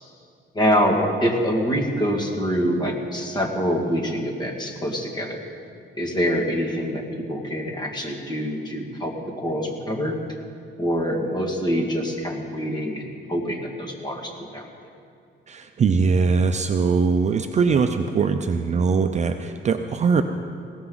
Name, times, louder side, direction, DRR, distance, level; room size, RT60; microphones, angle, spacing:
voice 1, 0.5-5.4 5.9-10.2 10.8-14.6, equal, 20° left, 1 dB, 2.1 m, -25 dB
voice 2, 15.5-20.2, right 5 dB, 35° right, 7 dB, 0.5 m, -21 dB
20.5 x 16.5 x 4.0 m, 2.3 s
cardioid pair, 160°, 21 cm